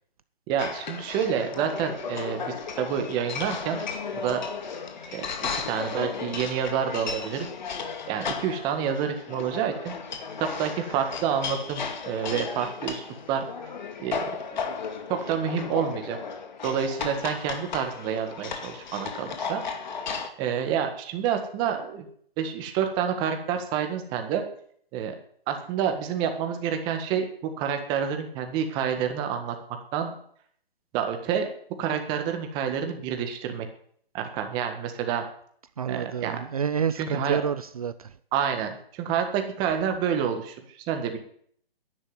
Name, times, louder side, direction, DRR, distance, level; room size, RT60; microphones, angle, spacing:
voice 1, 0.5-3.8 4.1-4.4 5.1-7.5 8.1-9.9 10.4-13.5 14.0-14.2 15.1-16.2 16.6-19.6 20.4-22.1 22.4-24.4 24.9-25.1 25.5-29.5 29.9-30.1 30.9-31.5 31.8-33.7 34.1-35.2 35.9-36.4 36.9-37.4 38.3-41.2, right 8 dB, 15° right, 6 dB, 1.6 m, -28 dB
sound 1, 0.6-20.3, left 5 dB, 50° left, 2.1 m, -35 dB
voice 2, 35.8-38.1, right 7 dB, 35° right, 14 dB, 0.6 m, -29 dB
12.5 x 11.0 x 9.7 m, 0.63 s
hypercardioid pair, 165°, 30 cm